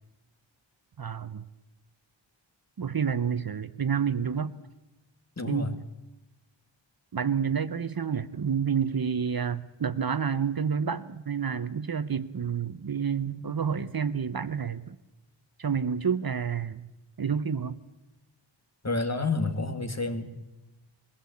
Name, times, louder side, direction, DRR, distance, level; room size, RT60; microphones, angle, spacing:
voice 1, 1.0-1.4 2.8-4.5 5.5-5.7 7.1-15.0 15.6-16.9 17.2-17.8, right 7 dB, 50° right, 13 dB, 0.8 m, -29 dB
voice 2, 5.4-5.8 18.8-20.3, left 3 dB, 35° left, 7 dB, 2.1 m, -29 dB
22.0 x 16.0 x 8.5 m, 1.0 s
wide cardioid pair, 80°, 46 cm